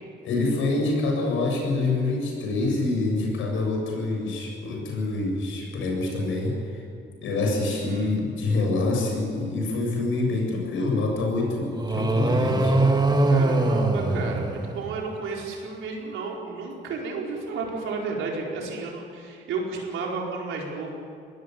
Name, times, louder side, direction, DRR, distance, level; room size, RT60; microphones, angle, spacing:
voice 1, 0.2-6.8 7.2-12.8, left 2 dB, 80° left, 0 dB, 7.6 m, -26 dB
voice 2, 7.7-8.2 13.3-20.9, right 4 dB, 85° right, -1 dB, 4.8 m, -32 dB
sound 1, 11.8-15.1, right 2 dB, 20° right, 2.3 m, -22 dB
20.0 x 17.5 x 9.6 m, 2.3 s
cardioid pair, 90°, 20 cm